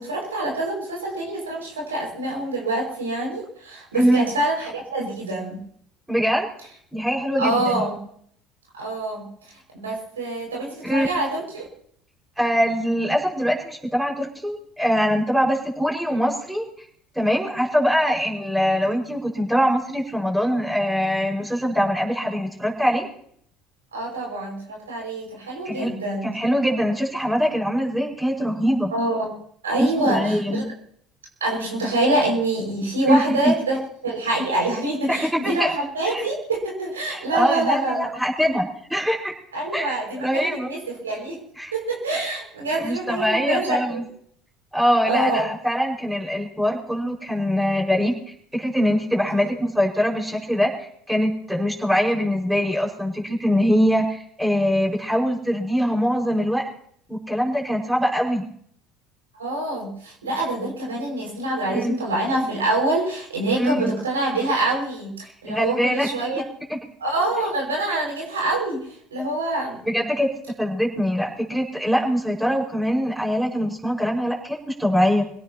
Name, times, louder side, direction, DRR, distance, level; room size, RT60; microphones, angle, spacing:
voice 1, 0.0-5.6 7.4-8.0 8.7-9.3 9.7-11.6 23.9-26.3 28.9-29.3 29.6-30.6 31.4-33.8 34.0-38.1 39.5-41.4 41.7-44.0 45.0-45.5 59.4-66.4 67.0-68.8 69.1-69.8, right 2 dB, 85° right, -1 dB, 5.8 m, -25 dB
voice 2, 3.9-4.3 6.1-6.5 6.9-7.9 10.8-11.1 12.4-16.7 17.2-23.1 25.7-25.9 26.2-28.9 29.8-30.6 33.1-33.5 35.1-35.7 36.1-36.2 37.1-39.3 39.7-40.7 41.6-41.7 42.8-44.0 44.7-48.1 48.5-56.6 57.1-58.4 61.7-61.9 63.6-63.9 65.5-66.1 66.3-66.4 66.7-66.8 69.9-70.3 70.6-75.2, equal, 5° right, 0 dB, 5.3 m, -23 dB
26.5 x 17.5 x 2.9 m, 0.65 s
hypercardioid pair, 65°, 0 cm